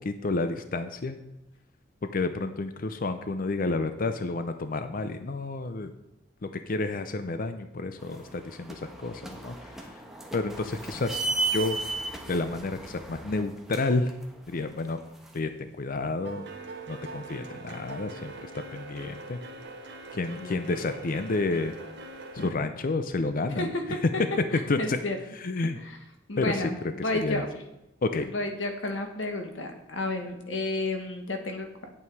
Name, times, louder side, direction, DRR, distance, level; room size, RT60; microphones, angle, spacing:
voice 1, 0.0-1.2 2.1-5.9 6.4-9.9 10.3-11.8 12.3-14.1 14.5-15.0 15.3-16.5 16.9-19.4 20.1-21.7 22.3-23.7 24.7-25.0 25.4-25.8 26.4-26.7 27.2-27.5 28.0-28.3, left 3 dB, 45° left, 9 dB, 0.6 m, -30 dB
sound 1, 8.0-15.4, right 3 dB, ahead, 1.2 m, -36 dB
sound 2, 14.9-15.3 15.6-22.5, right 2 dB, 65° right, 1.3 m, -43 dB
voice 2, 23.5-24.0 24.5-25.2 25.5-26.0 26.3-27.5 28.2-31.7, left 2 dB, 80° left, 5 dB, 1.6 m, -32 dB
9.3 x 8.5 x 4.7 m, 0.90 s
head